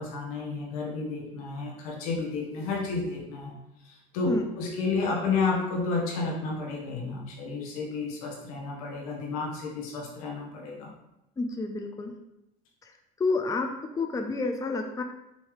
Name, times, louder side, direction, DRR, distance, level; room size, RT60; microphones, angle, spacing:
voice 1, 0.0-3.6 3.8-10.9, left 4 dB, 85° left, -1 dB, 1.2 m, -31 dB
voice 2, 11.4-12.1 12.8-12.9 13.2-13.7 13.9-15.0, left 3 dB, 20° left, 4 dB, 0.5 m, -29 dB
5.6 x 2.8 x 3.2 m, 0.86 s
supercardioid pair, 90°, 18 cm